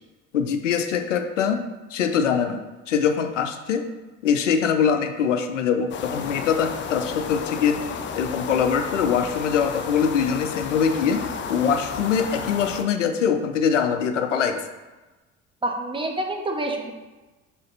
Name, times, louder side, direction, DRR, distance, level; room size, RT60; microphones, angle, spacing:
voice 1, 0.3-1.6 1.9-2.6 2.9-3.8 4.2-7.8 8.2-11.2 11.5-14.6, left 7 dB, 75° left, 7 dB, 0.5 m, -23 dB
sound 1, 5.9-12.8, left 6 dB, 30° left, 0.6 m, -32 dB
voice 2, 15.6-16.9, right 1 dB, 15° right, 3 dB, 0.9 m, -27 dB
6.4 x 3.7 x 4.0 m, 1.2 s
figure-of-eight pair, 55°, 37 cm